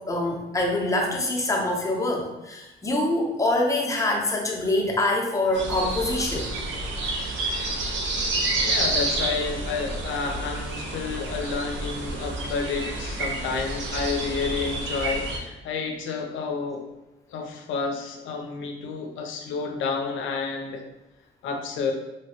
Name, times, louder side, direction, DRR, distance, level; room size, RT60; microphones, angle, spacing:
voice 1, 0.0-6.6, left 1 dB, 15° left, -1 dB, 0.6 m, -25 dB
sound 1, 5.5-15.4, right 2 dB, 70° right, 0.6 m, -29 dB
voice 2, 8.6-16.9 17.3-20.8 21.4-21.9, left 5 dB, 80° left, 4 dB, 0.5 m, -30 dB
3.1 x 2.2 x 2.8 m, 0.97 s
cardioid pair, 90°, 20 cm